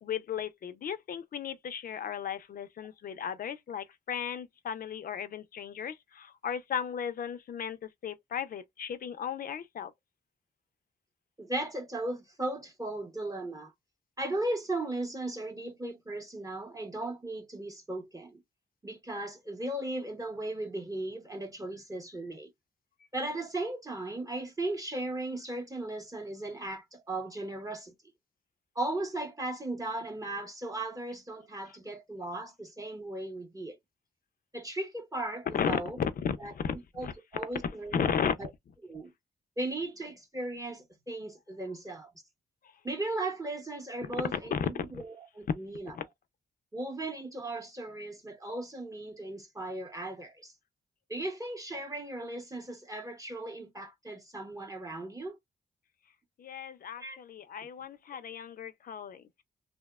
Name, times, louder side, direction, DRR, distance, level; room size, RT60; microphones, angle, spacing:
voice 1, 0.0-9.9 35.5-36.7 37.0-37.1 37.6-38.4 44.3-45.0 45.9-46.0 56.4-59.4, left 7 dB, 55° left, 0.4 m, -35 dB
voice 2, 11.4-13.7 14.2-18.4 18.8-22.5 23.1-27.9 28.8-33.8 34.5-36.0 36.4-36.5 37.0-38.1 38.4-38.5 38.8-39.1 39.6-42.1 42.8-45.9 46.7-50.5 51.1-55.4 57.0-57.2, right 2 dB, 20° right, 0.7 m, -37 dB
2.7 x 2.1 x 2.2 m
cardioid pair, 80°, 18 cm